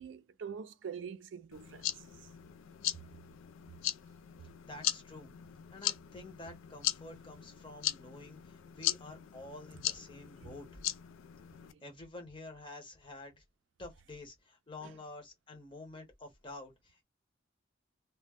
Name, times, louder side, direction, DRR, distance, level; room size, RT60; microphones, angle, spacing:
voice 1, 0.0-2.0 10.4-10.6 11.7-11.9 14.8-14.9, right 6 dB, 70° right, 0.4 m, -45 dB
sound 1, 1.5-11.7, left 13 dB, 90° left, 0.3 m, -39 dB
voice 2, 4.7-5.3 5.7-8.4 8.7-10.7 11.8-13.4 13.8-17.0, left 2 dB, 25° left, 0.8 m, -49 dB
2.1 x 2.0 x 3.3 m
head